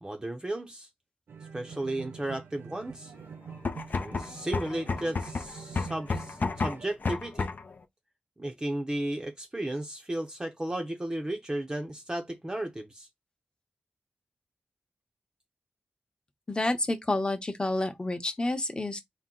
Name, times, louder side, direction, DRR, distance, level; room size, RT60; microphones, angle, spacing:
voice 1, 0.0-0.9 1.5-3.1 3.9-7.5 8.4-13.1, right 1 dB, 20° right, 0.6 m, -34 dB
sound 1, 1.3-6.9, right 6 dB, 85° right, 0.6 m, -46 dB
sound 2, 3.5-7.7, left 4 dB, 50° left, 0.5 m, -32 dB
voice 2, 16.5-19.0, left 2 dB, 25° left, 0.9 m, -29 dB
4.2 x 2.1 x 3.8 m
wide cardioid pair, 75°, 4 cm